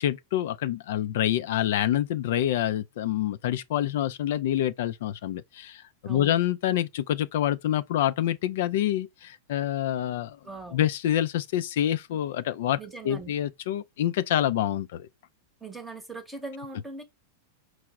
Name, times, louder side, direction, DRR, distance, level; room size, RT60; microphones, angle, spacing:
voice 1, 0.0-10.4 10.7-12.8 13.0-15.1, left 12 dB, 70° left, 0.4 m, -27 dB
voice 2, 6.0-6.4 10.4-10.8 12.8-13.3 15.6-17.0, right 3 dB, 10° right, 0.9 m, -40 dB
4.7 x 2.1 x 3.6 m
hypercardioid pair, 120°, 0 cm